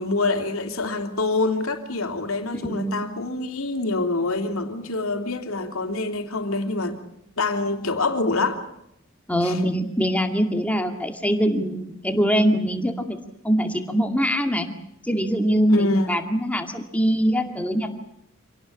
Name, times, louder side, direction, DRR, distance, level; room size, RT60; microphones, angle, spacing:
voice 1, 0.0-7.0 7.4-8.6 9.4-9.6 15.7-16.3, left 3 dB, 90° left, 3.2 m, -26 dB
voice 2, 2.6-3.1 9.3-13.2 13.4-14.7 15.0-17.9, equal, 5° left, 2.3 m, -23 dB
27.0 x 18.5 x 8.6 m
head